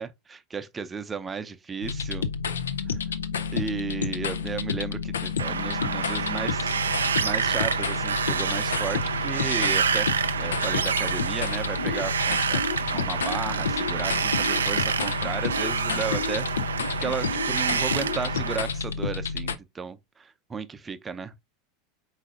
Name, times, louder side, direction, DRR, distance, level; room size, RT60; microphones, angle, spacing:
voice 1, 0.0-2.2 2.9-3.0 3.5-10.1 10.4-12.6 12.9-16.7 17.0-21.3, right 5 dB, 20° right, 0.5 m, -34 dB
sound 1, 1.8-19.6, left 5 dB, 80° left, 0.5 m, -30 dB
Wind, 5.4-18.6, right 6 dB, 85° right, 0.4 m, -28 dB
4.8 x 4.1 x 2.4 m
hypercardioid pair, 85°, 0 cm